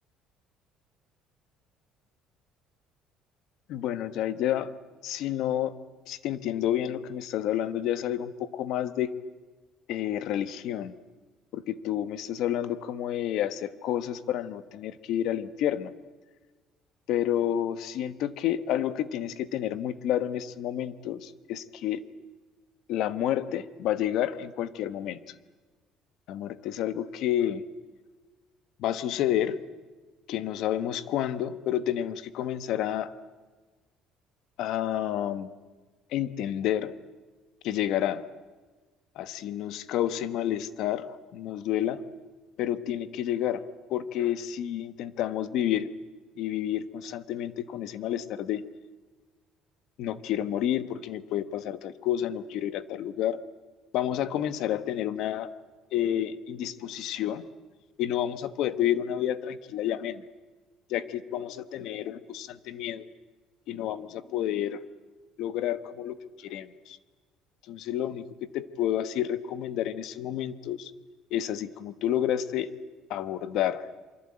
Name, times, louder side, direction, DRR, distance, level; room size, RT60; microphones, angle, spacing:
voice 1, 3.7-4.7 5.0-5.8 6.1-9.1 9.9-10.9 11.5-15.9 17.1-22.0 22.9-25.2 26.3-27.6 28.8-29.6 30.3-33.1 34.6-35.5 36.1-36.9 37.6-38.3 39.1-42.0 42.6-43.6 43.9-45.9 46.4-48.6 50.0-53.4 53.9-55.5 55.9-57.4 58.0-60.2 60.9-63.1 63.7-64.8 65.4-67.0 67.7-68.2 68.5-70.9 71.3-72.7 73.1-73.9, left 11 dB, 60° left, 13 dB, 1.3 m, -30 dB
27.5 x 24.5 x 8.8 m, 1.3 s
cardioid pair, 170°, 0 cm